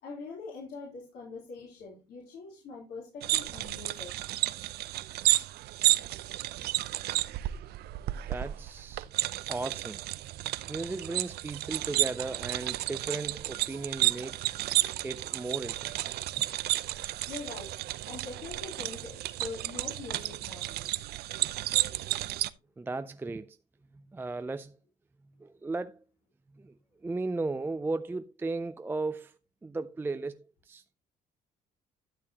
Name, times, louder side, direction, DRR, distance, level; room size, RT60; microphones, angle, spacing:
voice 1, 0.0-4.1 17.3-17.8 18.0-20.7, left 4 dB, 70° left, 3.5 m, -43 dB
sound 1, 3.2-22.5, right 15 dB, 70° right, 0.5 m, -32 dB
voice 2, 8.3-9.1 9.5-10.0 10.7-14.4 15.0-16.5 22.8-23.6 23.9-24.8 25.4-26.0 26.5-26.7 27.0-31.0, right 3 dB, 15° right, 0.4 m, -36 dB
12.0 x 6.9 x 2.9 m
cardioid pair, 110°, 17 cm